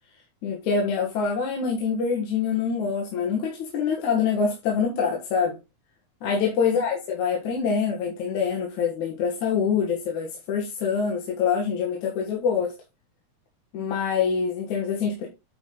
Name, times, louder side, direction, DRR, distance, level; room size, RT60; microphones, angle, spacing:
voice 1, 0.4-5.6 6.2-12.8 13.7-15.3, left 6 dB, 60° left, 2.7 m, -25 dB
9.1 x 4.9 x 3.9 m
omnidirectional pair, 4.3 m